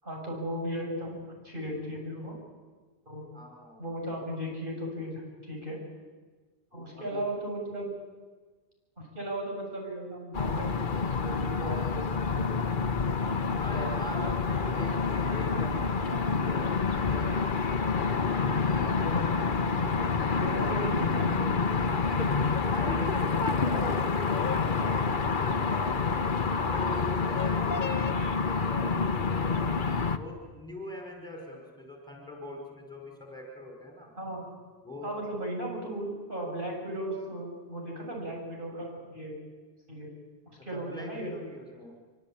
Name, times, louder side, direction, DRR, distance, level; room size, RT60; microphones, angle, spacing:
voice 1, 0.0-2.4 3.1-3.2 3.8-5.8 6.7-7.9 9.0-12.5 13.4-13.9 18.8-19.5 19.8-19.9 20.4-22.4 23.7-23.8 34.2-34.4 35.0-39.3 39.9-40.1 40.5-41.4, right 1 dB, 55° right, -1 dB, 7.7 m, -36 dB
voice 2, 3.3-3.8 6.7-7.2 13.5-17.7 18.2-19.4 22.0-22.4 22.7-25.9 26.5-29.7 30.1-34.1 34.8-35.2 40.6-41.9, left 1 dB, 5° left, 0 dB, 5.2 m, -42 dB
sound 1, 10.3-30.2, left 4 dB, 50° left, 1.3 m, -28 dB
25.5 x 24.5 x 8.9 m, 1.4 s
omnidirectional pair, 1.1 m